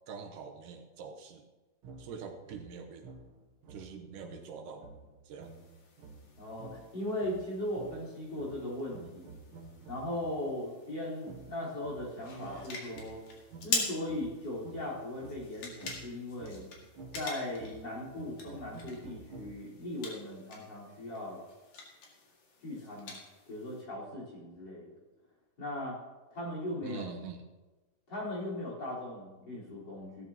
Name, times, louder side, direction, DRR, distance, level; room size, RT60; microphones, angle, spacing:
voice 1, 0.1-1.5 2.0-3.1 3.7-4.9 5.3-5.6 26.8-27.4, right 5 dB, 85° right, 4 dB, 2.6 m, -44 dB
sound 1, 1.8-10.6 11.2-19.9, right 3 dB, 65° right, 1.3 m, -51 dB
sound 2, 5.4-23.8, left 3 dB, 75° left, 3.5 m, -44 dB
voice 2, 6.4-9.3 9.9-13.2 13.6-16.6 17.1-21.4 22.6-23.2 23.5-24.9 25.6-26.0 26.3-27.1 28.1-30.2, left 1 dB, 35° left, -6 dB, 4.7 m, -38 dB
16.5 x 13.0 x 2.9 m, 1.2 s
omnidirectional pair, 3.6 m